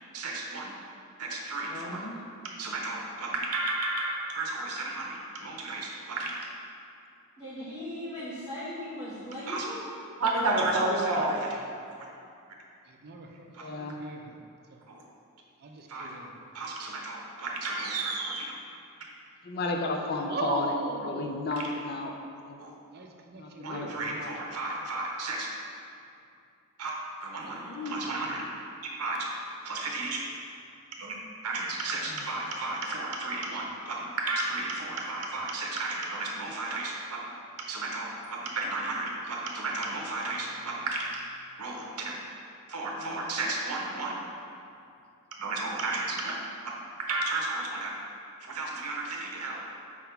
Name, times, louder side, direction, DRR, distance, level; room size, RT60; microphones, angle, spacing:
voice 1, 0.1-0.7 1.2-2.0 2.6-6.4 9.5-9.6 10.2-11.6 12.0-12.1 13.5-13.6 15.9-16.2 16.5-18.5 22.6-22.7 23.6-25.5 26.8-26.9 27.2-28.4 29.0-29.3 29.6-30.2 31.0-31.1 31.4-37.3 37.7-41.2 41.6-42.2 42.7-44.2 45.4-46.3 47.0-47.9 48.5-49.6, right 2 dB, 80° right, -1 dB, 0.7 m, -32 dB
voice 2, 1.7-2.2 13.4-14.0 19.4-22.6 23.3-24.4 27.5-28.2 32.0-32.3 42.9-43.2, left 2 dB, 45° left, 3 dB, 0.5 m, -34 dB
voice 3, 7.4-9.9, left 1 dB, 30° left, -12 dB, 1.2 m, -38 dB
voice 4, 12.9-14.8 15.6-16.4 20.3-21.3 22.9-24.1, right 3 dB, 45° right, 2 dB, 0.5 m, -38 dB
4.7 x 3.6 x 5.6 m, 2.5 s
head